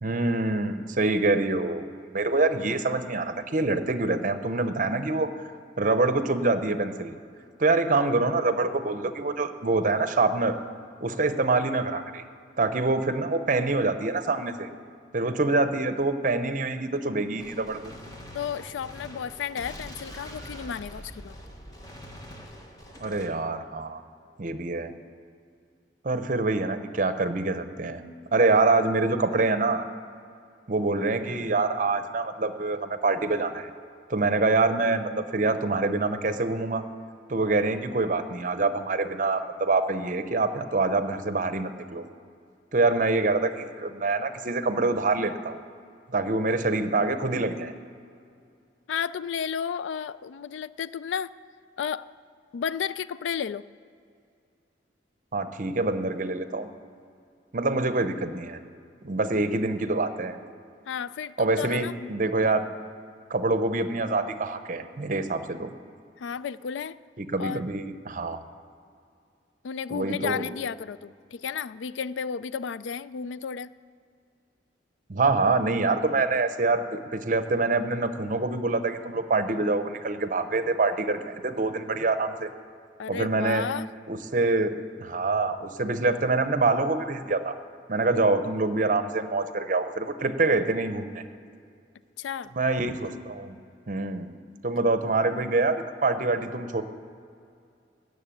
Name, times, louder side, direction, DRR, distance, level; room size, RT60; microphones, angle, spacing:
voice 1, 0.0-5.3 5.8-7.2 7.6-10.6 11.0-12.2 12.6-14.7 15.1-17.9 23.0-24.0 24.4-24.9 26.0-28.0 28.3-29.8 30.7-33.7 34.1-36.8 37.3-42.0 42.7-45.6 46.1-47.7 55.3-56.7 57.5-58.6 59.0-60.4 61.4-62.6 63.3-65.7 67.2-68.4 69.9-70.5 75.1-82.5 83.1-83.6 84.1-84.7 85.0-87.6 87.9-91.2 92.6-93.5 93.9-94.3 94.6-96.8, right 3 dB, 45° right, 10 dB, 0.7 m, -25 dB
Gunshot gunfire, 17.4-23.3, equal, 20° left, 1.2 m, -44 dB
voice 2, 18.3-21.4 48.9-51.3 51.8-52.1 52.5-53.6 60.9-61.9 66.2-67.0 67.4-67.7 69.6-73.7 83.0-83.9 92.2-92.5, left 7 dB, 85° left, 17 dB, 0.4 m, -33 dB
14.0 x 6.6 x 8.9 m, 2.4 s
head